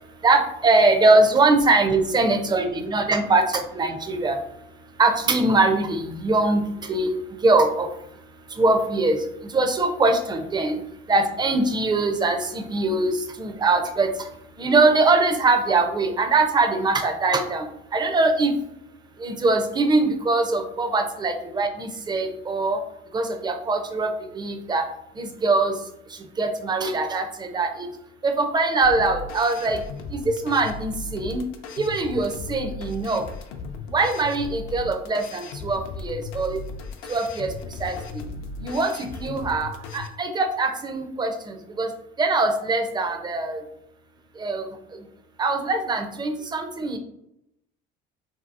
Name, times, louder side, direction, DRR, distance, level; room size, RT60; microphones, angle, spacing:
voice 1, 0.2-4.4 5.0-7.1 7.4-7.9 8.5-10.8 11.1-14.3 14.6-17.7 17.9-18.5 19.2-22.8 23.1-24.9 25.1-25.8 26.1-27.9 28.2-29.8 30.1-31.4 31.8-33.2 33.9-36.6 37.1-38.2 38.6-41.9 42.2-43.6 44.4-45.0 45.4-47.0, right 3 dB, 20° right, 6 dB, 0.4 m, -22 dB
sound 1, 28.8-40.1, left 4 dB, 75° left, 0.5 m, -36 dB
2.9 x 2.7 x 2.4 m, 0.79 s
supercardioid pair, 105°, 21 cm